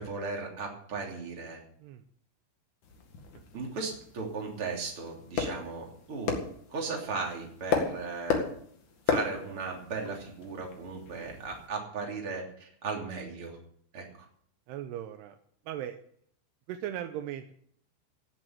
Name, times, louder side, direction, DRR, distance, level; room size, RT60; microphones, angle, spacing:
voice 1, 0.0-1.6 3.5-6.4 6.7-8.5 9.1-13.6 13.9-14.0, right 4 dB, 30° right, 0 dB, 3.3 m, -36 dB
sound 1, 2.8-11.7, left 5 dB, 50° left, 2.6 m, -35 dB
voice 2, 14.7-15.4 15.7-16.0 16.7-17.5, right 11 dB, 85° right, 8 dB, 2.3 m, -38 dB
17.5 x 7.6 x 8.3 m, 0.63 s
omnidirectional pair, 5.8 m